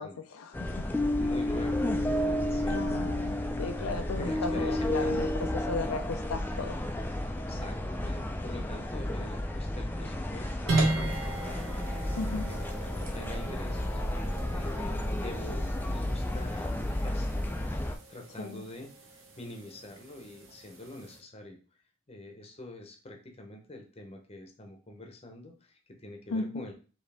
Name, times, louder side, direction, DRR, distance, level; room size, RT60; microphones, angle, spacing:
voice 1, 0.0-0.9 2.7-5.3 5.5-6.8 12.1-12.5 18.4-18.6 26.3-26.6, left 3 dB, 85° left, 7 dB, 0.5 m, -36 dB
sound 1, 0.5-17.9, left 1 dB, 10° left, 0.4 m, -32 dB
voice 2, 1.0-3.0 4.1-5.2 7.3-17.8 18.1-21.6 22.1-26.7, left 1 dB, 30° left, 3 dB, 0.8 m, -46 dB
sound 2, 10.7-21.2, right 2 dB, 65° right, 1.0 m, -37 dB
4.8 x 2.9 x 3.4 m, 0.36 s
head